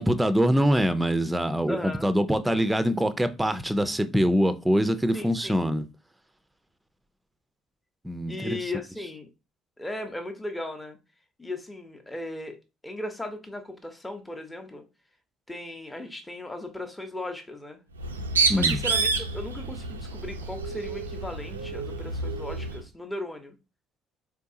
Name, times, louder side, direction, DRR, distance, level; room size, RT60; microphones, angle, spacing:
voice 1, 0.0-5.8 8.0-8.6 18.5-18.8, equal, 10° right, 0.6 m, -24 dB
voice 2, 1.7-2.1 5.1-5.6 8.3-9.3 9.8-11.0 11.4-12.6 12.8-14.9 15.5-17.8 18.5-23.6, left 2 dB, 15° left, 0.9 m, -37 dB
Bird, 18.0-22.8, right 4 dB, 85° right, 0.4 m, -28 dB
4.5 x 3.4 x 2.7 m
figure-of-eight pair, 55°, 0 cm